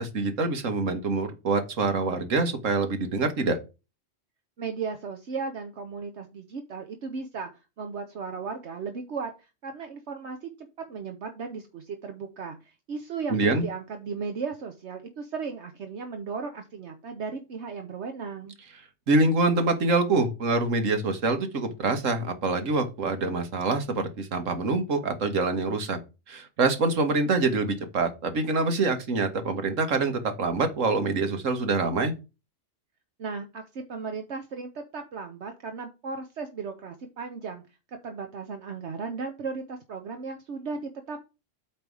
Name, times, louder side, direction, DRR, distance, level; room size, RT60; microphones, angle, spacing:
voice 1, 0.0-3.6 13.3-13.7 19.1-26.0 26.3-32.1, right 3 dB, 80° right, 8 dB, 1.7 m, -25 dB
voice 2, 4.6-7.5 7.8-18.6 33.2-37.6 37.9-41.3, right 5 dB, 65° right, 5 dB, 1.2 m, -36 dB
8.7 x 3.5 x 6.1 m, 0.28 s
omnidirectional pair, 1.3 m